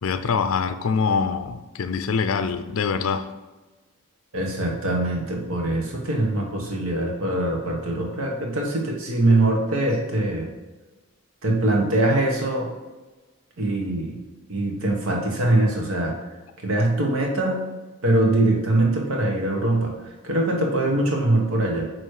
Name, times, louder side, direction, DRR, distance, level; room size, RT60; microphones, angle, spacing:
voice 1, 0.0-3.3, left 5 dB, 80° left, 10 dB, 0.4 m, -24 dB
voice 2, 4.3-10.5 11.4-12.7 13.6-14.2 14.5-16.2 16.6-17.7 18.0-19.9 20.2-21.9, right 1 dB, 80° right, 0 dB, 1.3 m, -22 dB
9.1 x 3.1 x 4.8 m, 1.2 s
head